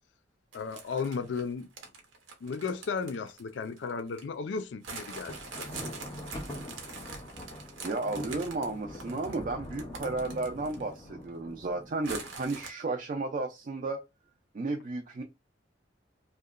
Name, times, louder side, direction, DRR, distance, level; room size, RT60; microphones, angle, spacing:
voice 1, 0.5-1.7 2.4-5.7, left 5 dB, 65° left, 0.4 m, -35 dB
sound 1, 0.5-4.3 4.8-11.0 11.3-11.4 12.0-12.7, right 4 dB, 90° right, 0.7 m, -44 dB
Thunder, 5.0-12.2, left 1 dB, 20° left, 0.6 m, -43 dB
voice 2, 7.8-14.0 14.5-15.2, right 3 dB, 45° right, 0.4 m, -33 dB
2.8 x 2.1 x 2.3 m
head